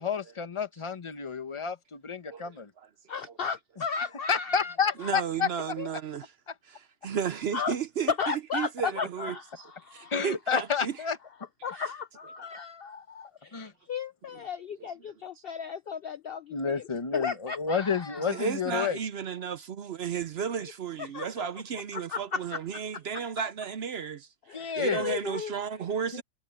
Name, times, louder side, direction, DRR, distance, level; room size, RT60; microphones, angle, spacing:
voice 1, 0.0-2.7 4.3-5.5 10.1-11.2 13.5-13.7 16.5-19.0 24.5-25.1 26.1-26.2, left 6 dB, 20° left, 1.1 m, -30 dB
voice 2, 3.1-4.7 5.0-5.1 5.8-5.9 7.5-7.7 8.1-10.2 11.6-16.8 17.1-18.4 21.0-21.3 21.9-22.6 24.5-25.5, left 6 dB, 75° left, 0.5 m, -35 dB
voice 3, 5.0-6.3 6.6-11.0 11.7-11.8 14.8-15.4 18.3-26.2, right 7 dB, 55° right, 0.7 m, -34 dB
omnidirectional pair, 1.5 m